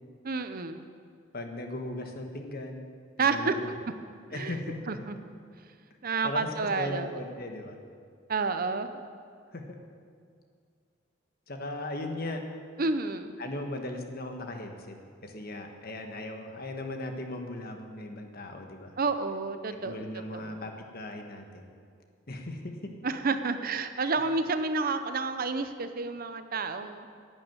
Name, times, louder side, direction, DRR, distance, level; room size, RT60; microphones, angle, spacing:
voice 1, 0.2-0.8 3.2-3.6 4.3-4.5 4.9-5.2 6.0-7.2 8.3-8.9 12.8-13.3 19.0-20.6 23.0-27.1, right 4 dB, 45° right, 10 dB, 0.7 m, -30 dB
voice 2, 1.3-2.8 3.2-3.7 4.3-5.0 6.2-6.5 6.7-7.8 9.5-9.8 11.5-12.4 13.4-14.9 15.2-19.0 19.8-21.7 22.3-22.9, left 2 dB, 50° left, 4 dB, 1.4 m, -38 dB
11.5 x 8.8 x 9.0 m, 2.2 s
head